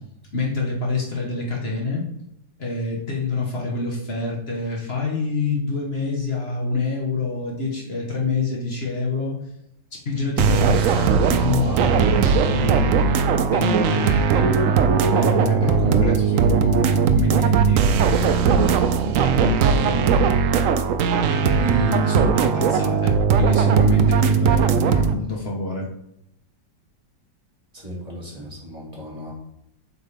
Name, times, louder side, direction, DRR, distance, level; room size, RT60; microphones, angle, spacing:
voice 1, 0.3-2.0 2.6-9.4 10.0-13.2 13.5-14.5 15.1-20.2 21.3-25.9, left 3 dB, 35° left, -3 dB, 1.7 m, -26 dB
sound 1, 10.4-25.1, right 6 dB, 85° right, 0.7 m, -19 dB
voice 2, 27.7-29.3, equal, 20° right, -4 dB, 2.5 m, -37 dB
7.7 x 5.0 x 3.6 m, 0.81 s
omnidirectional pair, 2.0 m